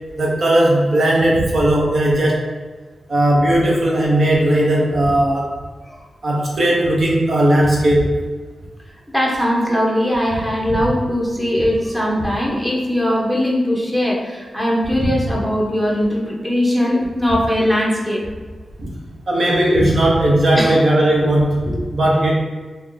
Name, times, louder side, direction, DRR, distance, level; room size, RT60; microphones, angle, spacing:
voice 1, 0.2-2.4 3.1-5.5 6.2-8.2 18.8-18.9 19.3-21.6 21.9-22.4, right 1 dB, 60° right, -3 dB, 1.0 m, -16 dB
voice 2, 9.1-18.2 20.5-20.8 21.6-21.8, equal, 5° right, -3 dB, 0.9 m, -20 dB
3.1 x 2.8 x 3.8 m, 1.4 s
wide cardioid pair, 90°, 0 cm